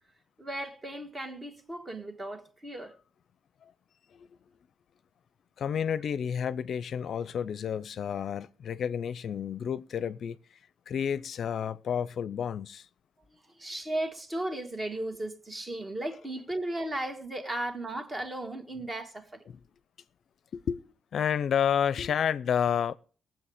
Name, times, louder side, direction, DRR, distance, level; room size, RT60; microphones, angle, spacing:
voice 1, 0.4-3.0 13.3-19.4, right 1 dB, 25° right, 2.0 m, -36 dB
voice 2, 5.6-10.4 10.9-12.9 19.5-19.6 20.5-20.8 21.1-22.9, left 8 dB, 60° left, 0.5 m, -30 dB
18.5 x 7.6 x 5.0 m
cardioid pair, 90°, 0 cm